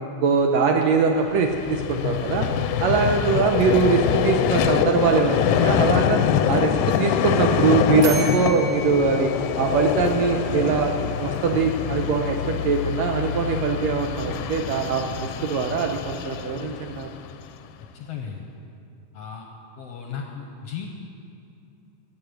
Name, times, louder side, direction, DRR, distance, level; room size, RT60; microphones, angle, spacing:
voice 1, 0.0-2.5 2.8-6.2 6.5-9.3 9.6-17.1, right 5 dB, 80° right, 3 dB, 1.6 m, -22 dB
Vehicle, 1.2-17.6, left 9 dB, 85° left, 2.0 m, -25 dB
sound 1, 8.0-10.8, right 2 dB, 60° right, 1.2 m, -36 dB
voice 2, 17.8-18.4 19.1-19.5 19.8-20.9, left 7 dB, 70° left, 2 dB, 1.6 m, -36 dB
12.0 x 8.4 x 7.7 m, 2.6 s
omnidirectional pair, 3.6 m